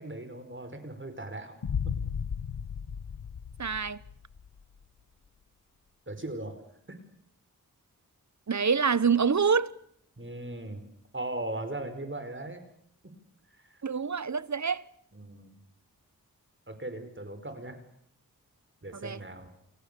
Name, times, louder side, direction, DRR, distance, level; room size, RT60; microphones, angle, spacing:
voice 1, 0.0-1.6 1.8-2.0 6.1-6.6 6.9-7.0 10.2-10.8 11.1-12.6 13.0-13.1 13.5-13.8 15.1-15.5 16.7-17.8 18.8-19.5, right 2 dB, 35° right, 5.1 m, -38 dB
Boom, 1.6-4.6, left 7 dB, 80° left, 1.2 m, -35 dB
voice 2, 3.6-4.0 8.5-9.7 13.8-14.8 19.0-19.2, right 6 dB, 50° right, 1.1 m, -26 dB
29.0 x 27.5 x 6.9 m
wide cardioid pair, 55°, 36 cm